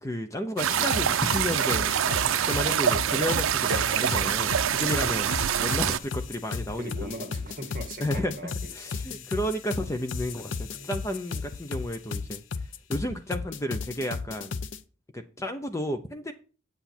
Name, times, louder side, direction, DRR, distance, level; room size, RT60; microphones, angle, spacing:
voice 1, 0.0-7.1 8.0-8.4 8.7-12.4 12.9-14.6 15.1-16.3, equal, 15° left, 0.6 m, -32 dB
sound 1, 0.6-6.0, right 9 dB, 85° right, 0.5 m, -25 dB
sound 2, 0.7-14.8, left 4 dB, 70° left, 0.6 m, -35 dB
voice 2, 4.6-5.1 6.8-8.7 9.0-9.3 10.7-10.9, right 1 dB, 40° right, 1.7 m, -41 dB
8.1 x 8.0 x 4.3 m
head